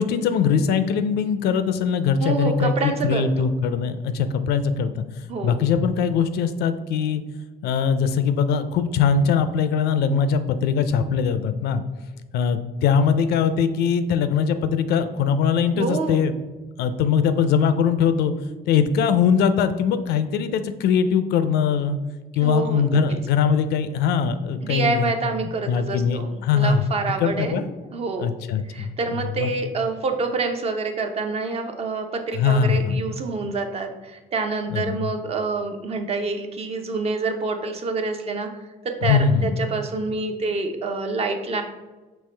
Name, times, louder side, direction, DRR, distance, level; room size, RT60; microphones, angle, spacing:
voice 1, 0.0-5.0 5.4-7.2 7.6-11.8 12.3-16.3 16.8-18.3 18.7-22.0 22.4-25.1 25.7-26.8 27.2-27.7 28.2-29.5 32.3-33.0 34.7-35.1 39.0-39.6, left 6 dB, 75° left, 10 dB, 0.4 m, -21 dB
voice 2, 2.2-3.3 5.3-5.6 15.7-16.2 22.4-22.8 24.6-27.6 27.9-28.3 28.7-38.5 38.8-41.6, right 3 dB, 35° right, 5 dB, 0.6 m, -27 dB
5.4 x 2.9 x 3.3 m, 1.2 s
cardioid pair, 110°, 17 cm